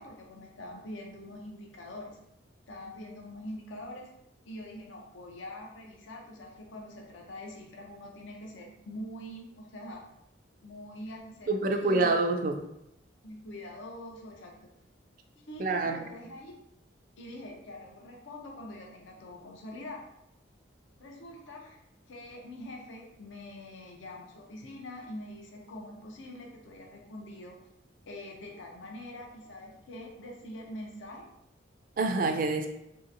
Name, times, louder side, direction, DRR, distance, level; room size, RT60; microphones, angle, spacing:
voice 1, 0.0-2.2 2.7-4.1 4.4-10.0 10.6-12.2 13.2-14.5 15.4-16.5 17.2-20.0 21.0-21.8 22.1-27.6 28.1-31.3, left 1 dB, 80° left, 0 dB, 0.6 m, -44 dB
voice 2, 11.5-12.6 15.6-16.1 32.0-32.7, right 3 dB, 45° right, 5 dB, 0.3 m, -27 dB
3.2 x 2.7 x 2.5 m, 0.81 s
head